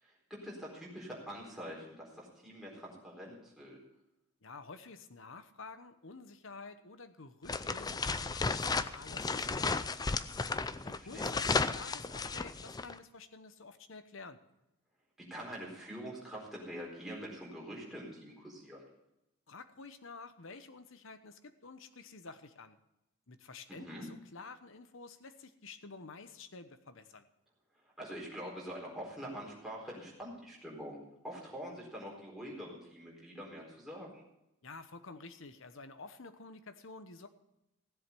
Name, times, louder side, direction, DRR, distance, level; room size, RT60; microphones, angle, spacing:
voice 1, 0.0-3.8 10.9-11.4 15.2-18.8 23.7-24.1 28.0-31.0 31.2-34.2, equal, ahead, -4 dB, 4.2 m, -45 dB
voice 2, 4.4-10.2 10.8-14.4 19.5-22.8 23.3-27.3 34.6-37.3, left 4 dB, 60° left, 10 dB, 1.0 m, -50 dB
sound 1, 7.5-12.9, left 4 dB, 15° left, 0.4 m, -34 dB
16.0 x 7.7 x 6.9 m, 0.88 s
head